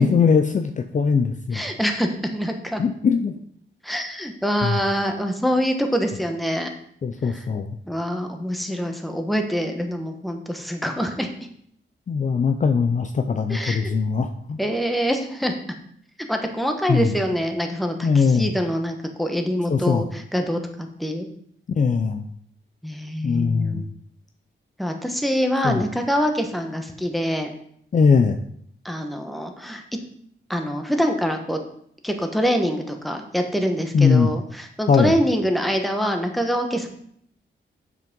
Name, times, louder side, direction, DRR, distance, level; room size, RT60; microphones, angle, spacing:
voice 1, 0.0-1.6 2.8-3.4 4.6-4.8 7.0-7.8 12.1-14.6 16.9-17.2 18.0-18.5 19.7-20.0 21.8-22.2 23.2-23.9 25.6-25.8 27.9-28.4 33.9-34.3 34.9-35.1, left 5 dB, 40° left, 7 dB, 0.5 m, -20 dB
voice 2, 1.5-2.8 3.8-6.7 7.3-7.4 7.9-11.3 13.5-13.9 14.6-15.5 16.3-21.3 22.8-23.9 24.8-27.5 28.8-29.8 30.5-31.6 32.0-36.9, equal, ahead, 4 dB, 1.1 m, -25 dB
7.4 x 6.1 x 5.3 m, 0.66 s
wide cardioid pair, 125°, 20 cm